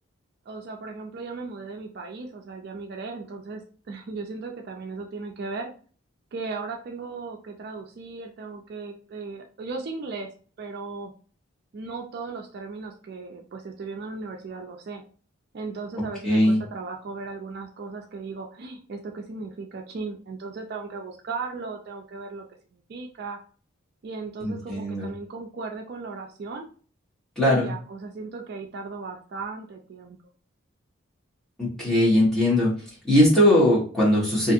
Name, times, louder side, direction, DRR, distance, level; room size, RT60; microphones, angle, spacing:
voice 1, 0.5-5.7 6.3-10.3 10.6-11.1 11.7-15.0 15.5-22.4 22.7-23.4 24.0-26.7 27.5-30.2, right 4 dB, 50° right, 2 dB, 0.3 m, -36 dB
voice 2, 16.2-16.6 24.4-25.1 27.4-27.7 31.6-32.7 33.0-34.5, left 1 dB, ahead, -7 dB, 1.0 m, -20 dB
2.5 x 2.4 x 2.6 m, 0.41 s
head